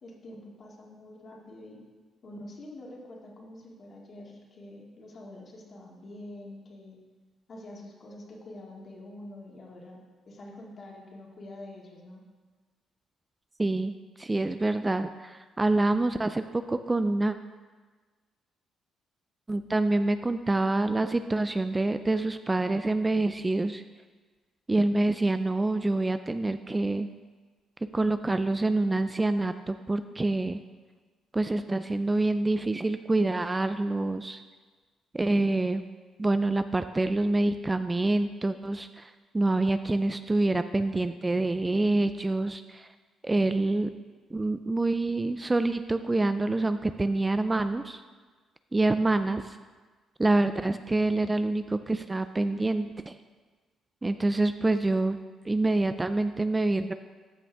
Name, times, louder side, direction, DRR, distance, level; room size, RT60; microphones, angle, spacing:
voice 1, 0.0-1.8 2.2-7.0 7.5-12.2, left 1 dB, 50° left, -2 dB, 2.2 m, -46 dB
voice 2, 13.6-17.4 19.5-23.8 24.7-27.1 27.8-30.6 31.3-34.4 35.1-35.8 36.2-42.9 43.2-43.9 44.3-48.0 48.7-49.6 50.2-53.1 54.0-55.2 55.5-56.9, right 2 dB, 20° right, 10 dB, 0.3 m, -26 dB
13.5 x 6.1 x 3.5 m, 1.4 s
cardioid pair, 90°, 0 cm